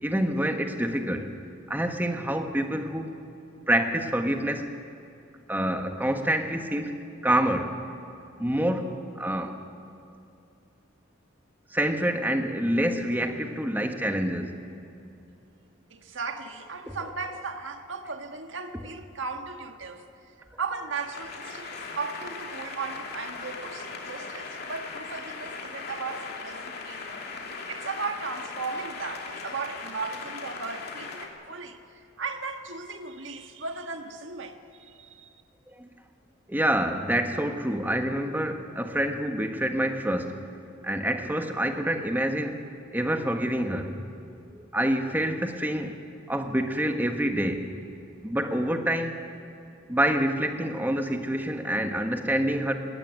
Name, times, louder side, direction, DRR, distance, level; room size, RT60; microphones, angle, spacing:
voice 1, 0.0-1.3 1.7-3.1 3.7-4.7 5.5-6.9 7.2-7.7 8.4-9.6 11.7-14.5 35.8-35.9 36.5-40.4 40.8-42.6 42.9-43.9 44.5-46.0 46.3-47.6 48.2-49.2 49.9-52.7, right 1 dB, 10° right, 1.5 m, -27 dB
voice 2, 15.9-20.1 20.6-27.1 27.7-31.8 32.2-35.3, right 4 dB, 70° right, 1.6 m, -36 dB
sound 1, 20.9-31.3, left 4 dB, 55° left, 2.6 m, -39 dB
20.5 x 17.0 x 9.1 m
head